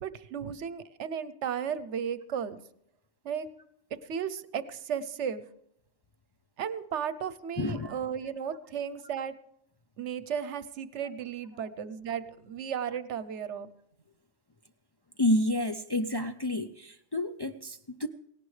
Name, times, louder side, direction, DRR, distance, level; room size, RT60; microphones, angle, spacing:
voice 1, 0.0-2.6 3.2-3.5 4.1-5.4 6.6-9.3 10.0-13.7, right 8 dB, 75° right, 15 dB, 1.0 m, -34 dB
voice 2, 7.6-8.0 15.2-18.1, left 1 dB, 40° left, 6 dB, 0.3 m, -29 dB
17.5 x 17.0 x 3.3 m, 0.75 s
omnidirectional pair, 1.2 m